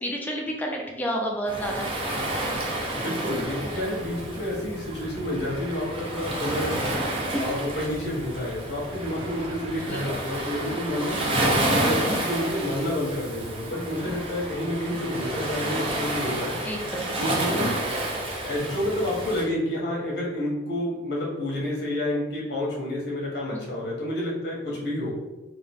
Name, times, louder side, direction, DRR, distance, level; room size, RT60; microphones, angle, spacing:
voice 1, 0.0-1.9 9.9-10.1 16.7-17.1 23.5-23.6, equal, 10° left, 0 dB, 0.6 m, -30 dB
Waves surf, 1.5-19.5, right 1 dB, 30° right, 0.8 m, -30 dB
voice 2, 3.0-11.2 11.7-16.6 17.2-17.6 18.4-25.2, left 1 dB, 65° left, -4 dB, 1.4 m, -29 dB
3.9 x 2.6 x 3.6 m, 1.1 s
head